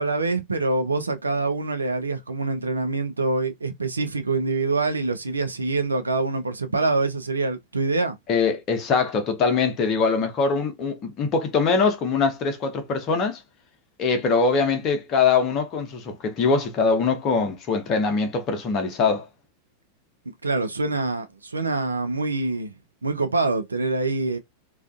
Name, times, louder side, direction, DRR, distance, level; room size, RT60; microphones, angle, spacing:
voice 1, 0.0-8.2 20.4-22.7 23.0-24.4, right 3 dB, 80° right, 0.4 m, -25 dB
voice 2, 8.3-13.4 14.0-19.3, left 4 dB, 35° left, 0.7 m, -22 dB
2.4 x 2.3 x 2.3 m
figure-of-eight pair, 90°, 0 cm